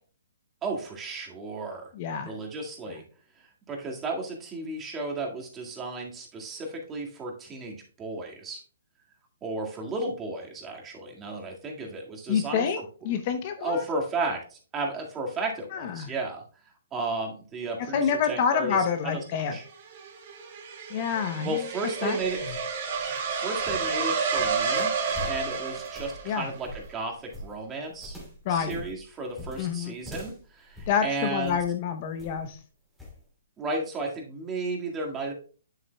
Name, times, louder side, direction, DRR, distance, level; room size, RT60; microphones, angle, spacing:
voice 1, 0.6-1.9 2.3-3.0 3.7-8.6 9.4-12.8 13.1-13.2 13.6-16.4 16.9-18.8 19.0-19.6 21.2-22.4 23.4-24.9 25.3-28.2 28.5-31.6 33.6-35.3, right 2 dB, 20° right, 0 dB, 1.9 m, -33 dB
voice 2, 1.9-2.3 12.3-13.8 15.7-16.1 17.9-19.5 20.9-21.6 22.0-22.2 26.3-26.5 28.5-28.8 29.6-29.9 30.9-32.6, left 7 dB, 40° left, 8 dB, 0.8 m, -27 dB
sound 1, 19.5-26.6, right 5 dB, 45° right, 2.0 m, -30 dB
sound 2, 22.1-31.7 32.2-32.5 33.0-33.2, left 1 dB, ahead, 2.8 m, -44 dB
9.2 x 7.6 x 2.3 m, 0.40 s
hypercardioid pair, 135°, 0 cm